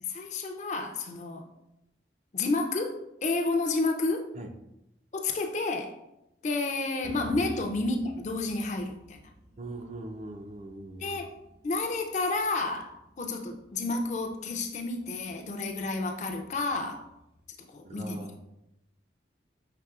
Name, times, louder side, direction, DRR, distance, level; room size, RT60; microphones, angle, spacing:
voice 1, 0.0-1.5 2.3-4.3 5.1-6.0 6.4-9.2 11.0-11.3 11.6-17.0 17.7-18.3, left 3 dB, 40° left, 4 dB, 0.4 m, -30 dB
sound 1, 7.0-17.6, equal, 70° right, 1.1 m, -52 dB
voice 2, 9.6-11.2 17.8-18.4, right 2 dB, 40° right, 5 dB, 0.4 m, -41 dB
5.8 x 3.2 x 2.4 m, 0.87 s
head